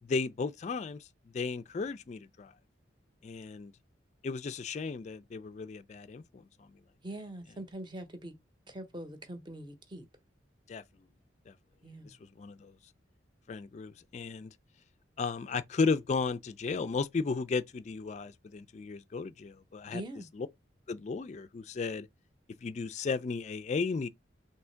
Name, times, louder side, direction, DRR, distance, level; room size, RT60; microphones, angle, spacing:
voice 1, 0.0-1.1 1.3-2.5 3.2-3.7 4.2-6.4 10.7-10.8 11.5-11.6 12.0-12.8 13.5-14.5 15.2-20.0 20.3-20.5 20.9-22.1 22.6-24.1, left 4 dB, 40° left, 0.3 m, -34 dB
voice 2, 7.0-8.3 8.7-10.1 11.8-12.2 19.9-20.3, right 1 dB, 25° right, 0.7 m, -43 dB
3.5 x 2.8 x 4.4 m
head